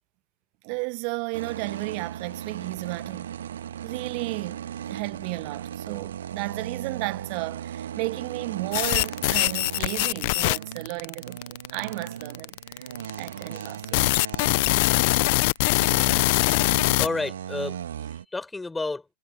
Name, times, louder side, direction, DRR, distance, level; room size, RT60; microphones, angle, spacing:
voice 1, 0.6-3.3 3.8-12.9 13.2-14.1, right 39 dB, 40° right, 1.3 m, -33 dB
sound 1, 1.3-15.2 15.6-18.2, right 10 dB, 60° right, 2.4 m, -37 dB
sound 2, 8.7-17.1, left 25 dB, 45° left, 1.0 m, -23 dB
voice 2, 15.8-16.3 17.0-17.8 18.3-19.1, left 3 dB, 10° left, 7.1 m, -31 dB
figure-of-eight pair, 100°, 0 cm